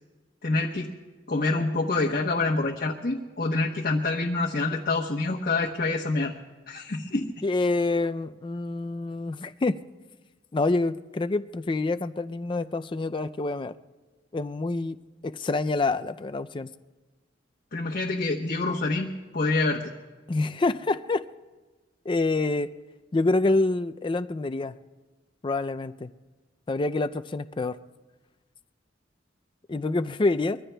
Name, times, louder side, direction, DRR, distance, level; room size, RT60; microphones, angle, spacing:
voice 1, 0.4-0.9 1.3-6.3 6.7-7.3 17.7-19.9, left 3 dB, 50° left, -2 dB, 1.0 m, -26 dB
voice 2, 7.4-9.8 10.5-13.7 14.3-15.0 15.2-16.7 20.3-21.2 22.1-22.7 23.1-24.7 25.4-26.1 26.7-27.8 29.7-30.6, left 2 dB, 25° left, 11 dB, 0.4 m, -27 dB
24.0 x 22.5 x 2.3 m, 1.3 s
head